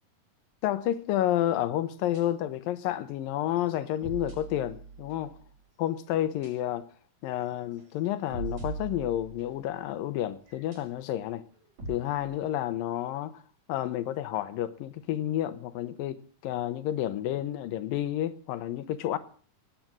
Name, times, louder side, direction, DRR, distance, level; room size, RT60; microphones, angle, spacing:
voice 1, 0.6-5.4 5.8-6.9 7.2-11.4 11.9-13.4 13.7-19.2, left 12 dB, 85° left, 2.7 m, -30 dB
sound 1, 2.0-2.5 3.0-3.1 3.5-5.5 6.4-6.8 7.2-7.4 7.8-9.8 10.5-11.1 11.5-12.4, right 3 dB, 50° right, 6.9 m, -41 dB
18.5 x 8.7 x 7.6 m
omnidirectional pair, 4.0 m